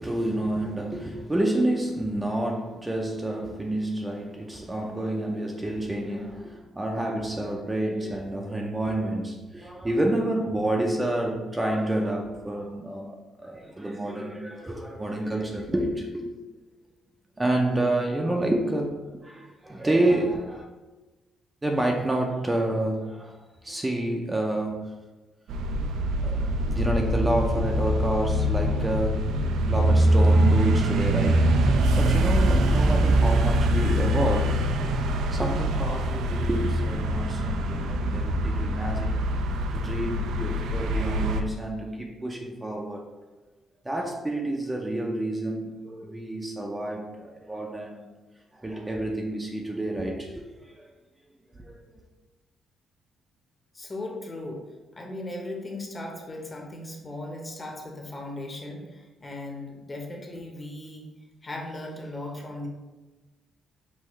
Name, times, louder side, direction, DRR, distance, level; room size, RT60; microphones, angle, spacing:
voice 1, 0.0-16.3 17.4-20.7 21.6-24.9 26.2-26.4 26.7-29.3 29.7-34.5 35.1-39.2 39.7-43.1 43.8-48.1 48.5-50.9 51.6-51.8, right 1 dB, 15° right, 1 dB, 0.5 m, -29 dB
sound 1, 25.5-41.4, right 1 dB, 75° right, 0.3 m, -23 dB
voice 2, 53.7-54.6 54.9-61.1 61.4-62.7, left 2 dB, 25° left, 0 dB, 0.9 m, -37 dB
5.6 x 2.5 x 3.1 m, 1.2 s
cardioid pair, 90°, 0 cm